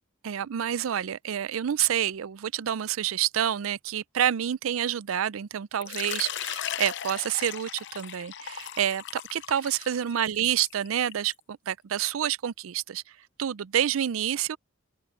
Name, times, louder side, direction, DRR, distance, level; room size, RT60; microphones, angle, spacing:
voice 1, 0.2-13.0 13.4-14.6, right 10 dB, 80° right, 0.4 m, -28 dB
Water / Liquid, 5.8-11.3, left 10 dB, 65° left, 0.7 m, -37 dB
open air
head